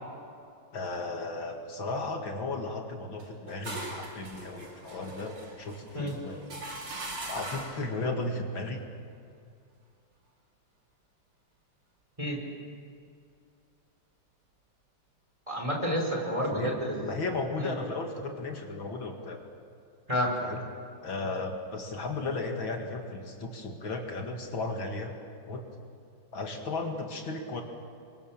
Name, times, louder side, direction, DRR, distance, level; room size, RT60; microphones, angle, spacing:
voice 1, 0.7-6.5 7.3-8.8 16.5-16.7 17.1-19.4 20.4-20.6 21.0-25.1 25.5-25.6 26.3-27.6, left 3 dB, 70° left, 2 dB, 2.9 m, -35 dB
sound 1, 3.2-7.9, right 2 dB, 85° right, 4.7 m, -41 dB
voice 2, 15.5-17.1 17.6-17.7 20.1-20.3, equal, 15° right, 0 dB, 4.7 m, -30 dB
29.0 x 24.0 x 7.4 m, 2.4 s
omnidirectional pair, 2.3 m